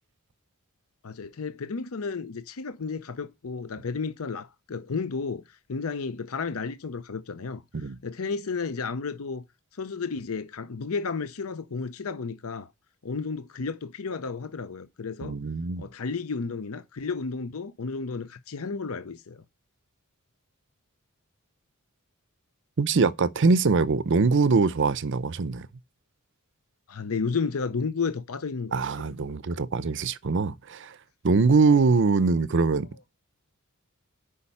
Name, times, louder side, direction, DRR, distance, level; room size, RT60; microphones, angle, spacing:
voice 1, 1.0-9.4 9.7-12.7 13.0-15.4 15.8-19.4 26.9-29.1, left 4 dB, 70° left, 0.6 m, -32 dB
voice 2, 15.2-15.9 22.8-25.7 28.7-30.9 31.2-32.9, right 4 dB, 55° right, 0.6 m, -23 dB
8.4 x 5.4 x 5.5 m
head